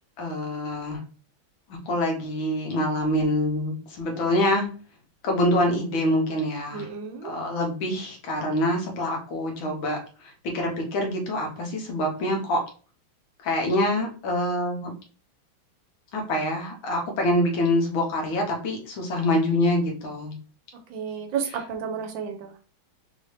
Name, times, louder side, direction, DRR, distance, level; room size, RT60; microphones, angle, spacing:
voice 1, 0.2-1.0 1.9-4.7 5.2-6.9 7.2-12.6 13.4-14.9 16.1-20.4, left 1 dB, 75° left, 1 dB, 1.9 m, -25 dB
voice 2, 6.7-7.3 20.9-22.5, right 7 dB, 75° right, 4 dB, 1.3 m, -32 dB
4.0 x 2.8 x 3.2 m, 0.38 s
omnidirectional pair, 2.2 m